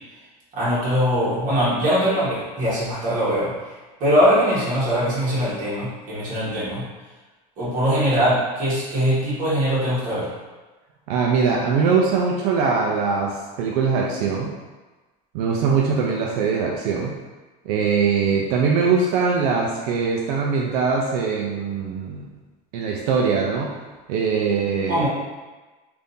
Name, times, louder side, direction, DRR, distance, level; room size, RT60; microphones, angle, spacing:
voice 1, 0.5-3.5 4.0-6.8 7.6-10.3 24.9-25.1, equal, 40° right, -8 dB, 1.5 m, -21 dB
voice 2, 11.1-14.5 15.3-17.2 17.7-22.3 22.7-23.8 24.1-25.0, right 5 dB, 90° right, -1 dB, 0.5 m, -22 dB
3.5 x 2.6 x 2.7 m, 1.2 s
cardioid pair, 155°, 19 cm